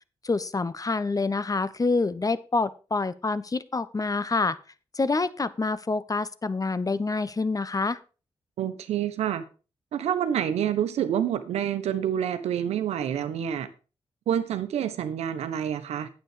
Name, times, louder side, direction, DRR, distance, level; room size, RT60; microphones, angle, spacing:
voice 1, 0.2-4.6 4.9-8.0, left 3 dB, 35° left, 0.9 m, -27 dB
voice 2, 8.6-9.4 9.9-13.7 14.3-16.1, right 9 dB, 85° right, 1.0 m, -27 dB
9.2 x 7.9 x 5.0 m
supercardioid pair, 40°, 11 cm